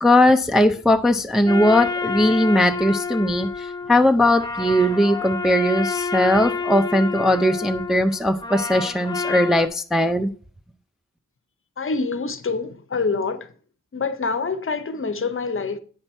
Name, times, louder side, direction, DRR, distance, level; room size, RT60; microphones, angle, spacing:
voice 1, 0.0-10.3, left 1 dB, ahead, 0.4 m, -19 dB
sound 1, 1.5-9.7, left 4 dB, 15° left, 0.8 m, -28 dB
voice 2, 11.8-13.5 13.9-15.8, left 4 dB, 45° left, 0.8 m, -26 dB
8.9 x 5.9 x 4.3 m
wide cardioid pair, 165°, 31 cm